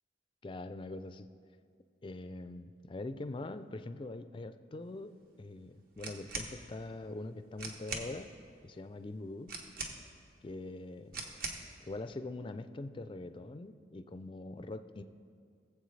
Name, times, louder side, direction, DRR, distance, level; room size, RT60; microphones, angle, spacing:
voice 1, 0.4-1.3 2.0-5.1 5.4-8.3 8.6-9.5 10.4-11.2 11.8-15.0, left 2 dB, 30° left, 10 dB, 0.4 m, -43 dB
sound 1, 6.0-6.5 7.3-7.4 7.6-8.1 9.5-10.2 11.1-11.7, right 3 dB, 55° right, 1.2 m, -41 dB
20.0 x 7.5 x 3.2 m, 2.3 s
head